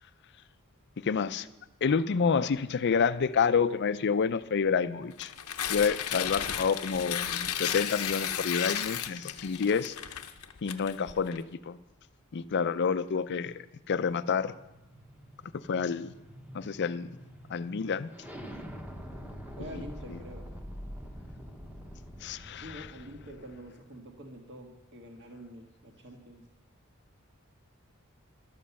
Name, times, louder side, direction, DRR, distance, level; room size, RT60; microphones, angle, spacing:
voice 1, 1.0-1.5 1.8-5.3 5.7-10.0 10.6-11.8 12.3-14.5 15.7-16.1 16.5-17.1 17.5-18.1 19.7-19.8 22.2-22.9, left 6 dB, 50° left, 14 dB, 0.5 m, -28 dB
Tearing, 5.1-11.4, left 9 dB, 85° left, 0.8 m, -34 dB
sound 1, 13.6-23.7, equal, 5° right, 1.0 m, -46 dB
voice 2, 19.6-20.5 22.6-26.4, equal, 55° right, 2 dB, 1.6 m, -46 dB
12.0 x 7.4 x 7.0 m, 0.98 s
head